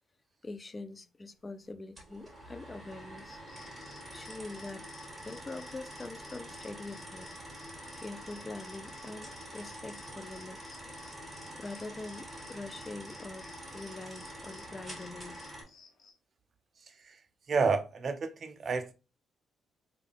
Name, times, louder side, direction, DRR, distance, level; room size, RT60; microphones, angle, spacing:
voice 1, 0.4-3.4 4.1-4.8 5.2-7.3 8.0-10.8 11.5-15.4, left 2 dB, 25° left, 0.3 m, -44 dB
sound 1, 2.0-15.6, equal, 10° right, 1.9 m, -46 dB
sound 2, 3.3-16.1, left 4 dB, 60° left, 1.0 m, -59 dB
voice 2, 16.9-17.2 17.5-18.9, right 4 dB, 45° right, 0.5 m, -30 dB
3.5 x 2.3 x 3.4 m
cardioid pair, 90°, 0 cm